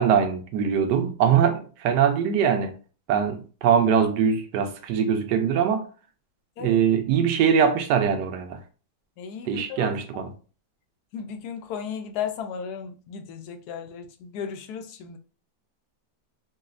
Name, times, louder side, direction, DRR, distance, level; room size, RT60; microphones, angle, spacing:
voice 1, 0.0-2.7 3.1-5.9 6.6-8.6 9.5-10.3, right 7 dB, 90° right, 1.2 m, -22 dB
voice 2, 9.2-9.9 11.1-15.2, left 7 dB, 75° left, 1.1 m, -35 dB
4.0 x 2.3 x 2.4 m
omnidirectional pair, 1.8 m